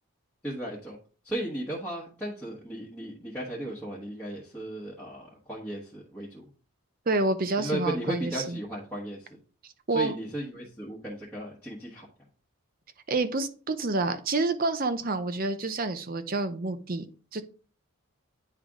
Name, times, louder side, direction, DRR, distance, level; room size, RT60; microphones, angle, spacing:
voice 1, 0.4-1.0 1.2-6.4 7.6-9.4 9.9-12.1, right 1 dB, 5° left, 1.2 m, -35 dB
voice 2, 7.1-8.6 9.9-10.1 13.1-17.0 17.3-17.4, right 3 dB, 40° right, 0.6 m, -28 dB
9.9 x 3.4 x 3.6 m
head